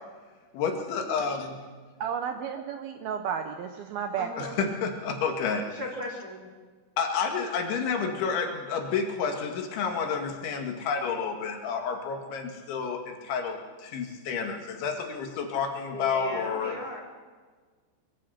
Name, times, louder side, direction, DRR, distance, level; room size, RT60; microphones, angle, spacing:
voice 1, 0.5-1.6 4.4-5.8 7.0-16.7, left 5 dB, 75° left, 3 dB, 4.5 m, -30 dB
voice 2, 2.0-4.3, right 7 dB, 75° right, 7 dB, 2.3 m, -32 dB
voice 3, 4.2-4.6 5.6-6.5 15.9-17.0, left 1 dB, 25° right, 1 dB, 2.5 m, -37 dB
23.5 x 23.0 x 6.0 m, 1.5 s
omnidirectional pair, 5.3 m